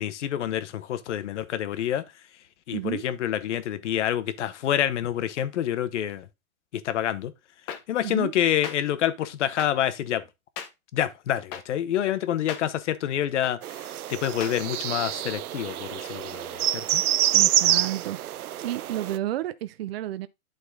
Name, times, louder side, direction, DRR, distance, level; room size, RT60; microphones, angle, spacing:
voice 1, 0.0-2.0 2.7-6.3 6.7-7.3 7.9-10.2 10.9-13.6 14.1-17.0, left 11 dB, 55° left, 1.1 m, -27 dB
voice 2, 2.7-3.0 8.0-8.3 17.3-18.4 18.6-20.3, right 13 dB, 45° right, 0.6 m, -31 dB
sound 1, 7.7-7.8 8.6-8.8 9.6-9.7 10.6-10.7 11.5-11.6 12.5-12.6 13.4-13.5 14.4-14.5, left 8 dB, 20° left, 0.6 m, -35 dB
sound 2, 13.6-19.2, right 12 dB, 85° right, 0.7 m, -26 dB
11.5 x 4.1 x 3.7 m
hypercardioid pair, 155°, 43 cm